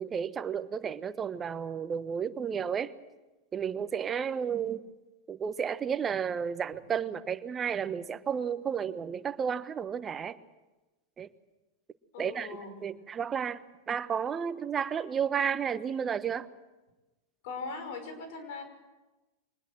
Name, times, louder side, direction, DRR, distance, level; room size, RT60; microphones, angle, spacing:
voice 1, 0.0-2.9 3.5-4.8 5.3-10.4 11.2-11.3 12.2-16.5, right 7 dB, 25° right, 12 dB, 1.3 m, -32 dB
voice 2, 12.1-12.7 17.4-18.6, left 4 dB, 65° left, 7 dB, 5.7 m, -39 dB
24.0 x 20.0 x 7.8 m, 1.1 s
hypercardioid pair, 100°, 0 cm